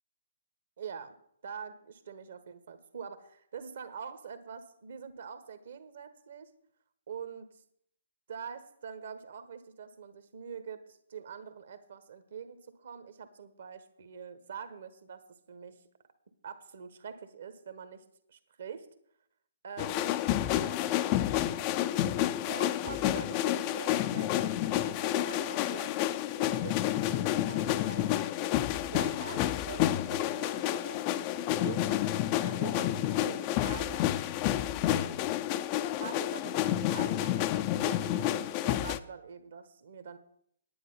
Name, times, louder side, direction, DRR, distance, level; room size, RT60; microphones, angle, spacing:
voice 1, 0.8-1.2 1.4-6.5 7.1-7.6 8.3-15.2 15.5-15.8 16.4-18.9 19.6-20.2 20.6-21.2 22.5-28.1 28.4-32.0 32.4-34.2 34.9-35.3 35.8-40.2, right 6 dB, 55° right, 11 dB, 1.3 m, -45 dB
sound 1, 19.8-39.0, left 13 dB, 30° left, 0.5 m, -30 dB
10.0 x 9.3 x 5.6 m, 0.68 s
figure-of-eight pair, 130°, 0 cm